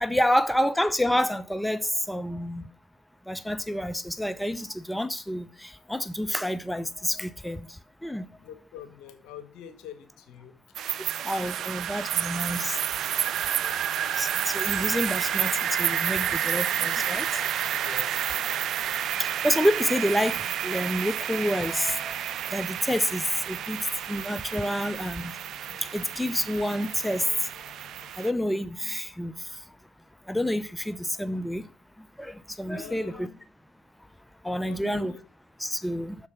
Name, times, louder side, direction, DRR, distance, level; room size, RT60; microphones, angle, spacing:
voice 1, 0.0-2.6 3.3-7.7 8.0-8.3 11.2-12.8 14.2-17.4 19.2-22.2 22.5-25.3 25.9-27.3 28.2-29.3 30.3-31.6 32.2-33.3 34.4-35.1 35.6-36.2, equal, 5° left, 0.5 m, -28 dB
voice 2, 8.4-10.6 11.0-11.1 17.8-18.1 32.7-33.4 34.6-35.2, left 9 dB, 75° left, 0.9 m, -44 dB
sound 1, 10.8-28.3, right 10 dB, 65° right, 0.3 m, -30 dB
sound 2, 12.2-28.1, left 7 dB, 50° left, 1.3 m, -54 dB
6.5 x 4.5 x 5.5 m
hypercardioid pair, 55°, 0 cm